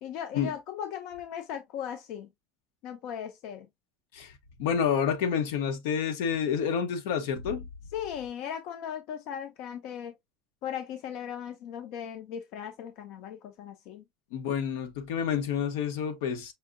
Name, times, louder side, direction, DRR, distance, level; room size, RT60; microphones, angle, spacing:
voice 1, 0.0-2.3 2.8-3.7 7.9-10.1 10.6-14.0, left 9 dB, 50° left, 0.6 m, -38 dB
voice 2, 4.6-7.7 14.3-16.5, left 7 dB, 75° left, 0.9 m, -29 dB
5.5 x 2.7 x 2.5 m
cardioid pair, 180°, 0 cm